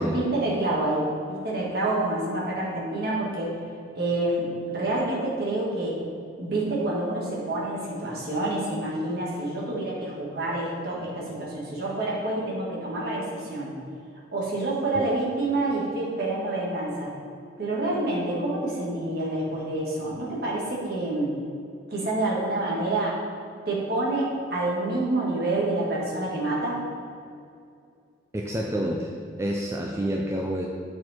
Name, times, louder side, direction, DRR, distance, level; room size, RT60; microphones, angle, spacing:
voice 1, 0.0-3.5 3.9-6.0 6.4-13.8 14.3-17.2 17.6-21.4 21.9-23.2 23.7-26.8, right 2 dB, 55° right, -5 dB, 1.8 m, -28 dB
voice 2, 28.3-29.1 29.4-30.7, right 1 dB, 15° right, -1 dB, 0.4 m, -28 dB
8.7 x 4.4 x 4.3 m, 2.4 s
head